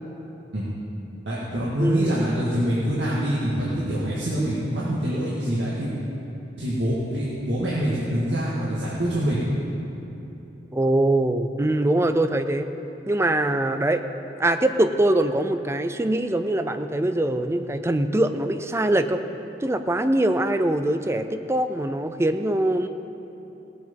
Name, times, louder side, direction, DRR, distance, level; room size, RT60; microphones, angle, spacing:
voice 1, 1.3-5.9 6.6-9.4, equal, 75° right, -8 dB, 1.9 m, -25 dB
voice 2, 1.8-2.2 10.7-12.7 13.1-14.0 14.4-19.2 19.6-22.9, right 1 dB, 15° right, 9 dB, 0.4 m, -23 dB
18.0 x 7.8 x 5.3 m, 2.9 s
head